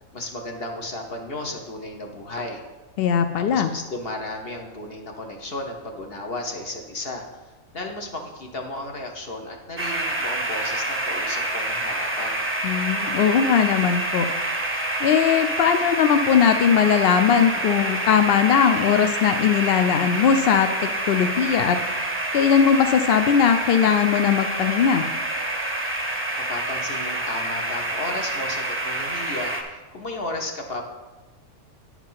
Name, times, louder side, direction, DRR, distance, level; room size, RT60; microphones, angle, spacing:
voice 1, 0.1-2.6 3.4-7.3 7.7-12.5 26.4-30.9, left 2 dB, 45° left, 2 dB, 1.0 m, -34 dB
voice 2, 3.0-3.7 12.6-14.3 15.0-20.7 21.1-21.8 22.3-25.1, left 7 dB, 75° left, 8 dB, 0.5 m, -19 dB
sound 1, 9.8-29.6, right 1 dB, 15° right, 0.6 m, -27 dB
9.6 x 4.8 x 5.6 m, 1.2 s
omnidirectional pair, 1.5 m